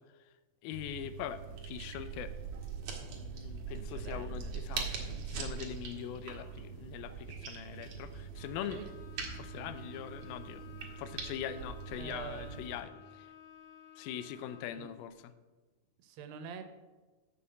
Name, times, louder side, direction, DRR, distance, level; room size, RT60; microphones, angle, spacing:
voice 1, 0.6-2.3 3.0-8.8 9.3-10.6 11.0-13.3 14.0-15.1, left 10 dB, 85° left, 12 dB, 2.4 m, -42 dB
sound 1, 0.7-12.8, right 5 dB, 55° right, 1.8 m, -42 dB
voice 2, 3.7-4.5 8.7-8.9 9.6-9.7 12.0-12.6 14.8-14.9 16.0-16.6, right 7 dB, 80° right, 9 dB, 2.5 m, -46 dB
Bowed string instrument, 8.3-14.8, left 9 dB, 65° left, 1.8 m, -54 dB
7.0 x 6.8 x 7.5 m, 1.2 s
omnidirectional pair, 4.1 m